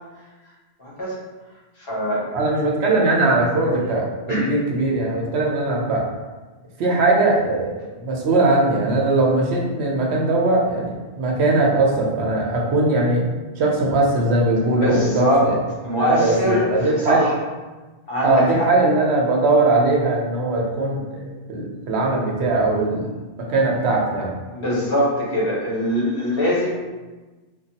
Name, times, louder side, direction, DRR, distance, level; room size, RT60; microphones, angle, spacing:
voice 1, 0.8-1.2 1.8-2.3 4.3-4.5 14.7-15.5 15.8-17.3 18.1-18.7 24.5-26.7, equal, 60° left, -5 dB, 1.1 m, -22 dB
voice 2, 2.3-6.0 6.8-10.9 11.2-13.2 13.6-15.6 16.0-17.3 18.2-23.1 23.5-24.3, right 2 dB, 85° right, -2 dB, 0.9 m, -20 dB
3.0 x 2.2 x 2.7 m, 1.2 s
omnidirectional pair, 1.1 m